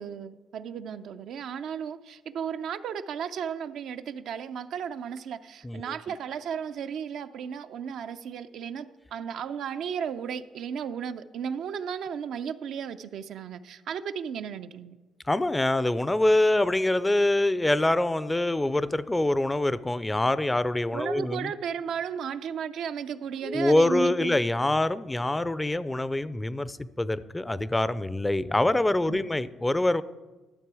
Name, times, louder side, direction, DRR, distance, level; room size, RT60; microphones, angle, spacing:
voice 1, 0.0-15.0 20.9-24.4 29.1-29.3, right 7 dB, 75° right, 9 dB, 0.4 m, -34 dB
voice 2, 15.3-21.5 23.5-30.0, left 1 dB, 15° left, 16 dB, 0.4 m, -25 dB
12.5 x 6.7 x 4.8 m, 1.2 s
cardioid pair, 90°, 0 cm